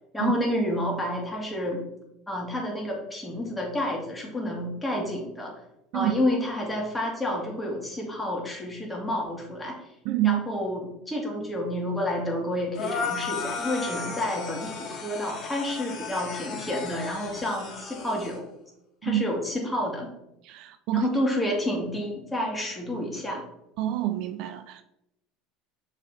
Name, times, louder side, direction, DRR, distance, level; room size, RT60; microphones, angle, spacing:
voice 1, 0.1-1.8 2.3-5.5 5.9-9.8 10.2-18.5 19.0-20.1 20.9-23.4, left 1 dB, 10° left, -2 dB, 2.3 m, -29 dB
voice 2, 10.0-10.4 19.0-19.2 20.4-21.1 23.8-24.8, right 14 dB, 65° right, 10 dB, 0.5 m, -26 dB
sound 1, 12.7-18.4, left 5 dB, 40° left, 2.3 m, -35 dB
6.4 x 5.0 x 3.8 m, 0.84 s
supercardioid pair, 100°, 0 cm